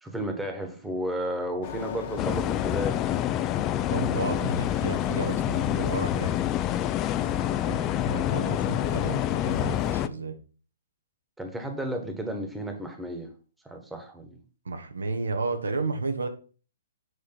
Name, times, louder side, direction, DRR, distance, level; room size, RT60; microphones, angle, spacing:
voice 1, 0.0-3.0 4.3-4.5 7.5-7.7 11.4-13.3 13.6-14.4, equal, 5° right, 5 dB, 1.3 m, -33 dB
sound 1, 1.6-10.1, left 7 dB, 45° left, 1.0 m, -38 dB
sound 2, 2.2-10.1, left 12 dB, 25° left, 0.3 m, -27 dB
voice 2, 3.9-6.3 7.6-10.4 14.6-16.3, right 3 dB, 85° right, 7 dB, 1.1 m, -32 dB
7.9 x 3.3 x 5.8 m, 0.38 s
hypercardioid pair, 135°, 0 cm